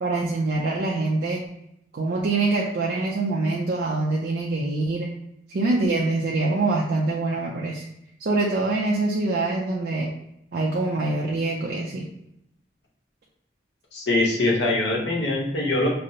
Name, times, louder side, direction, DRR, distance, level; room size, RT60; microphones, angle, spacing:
voice 1, 0.0-1.5 1.9-5.1 5.5-7.9 8.2-10.1 10.5-12.1, right 2 dB, 60° right, -3 dB, 0.4 m, -24 dB
voice 2, 13.9-15.9, left 2 dB, 75° left, -2 dB, 0.9 m, -23 dB
5.0 x 2.0 x 2.7 m, 0.80 s
head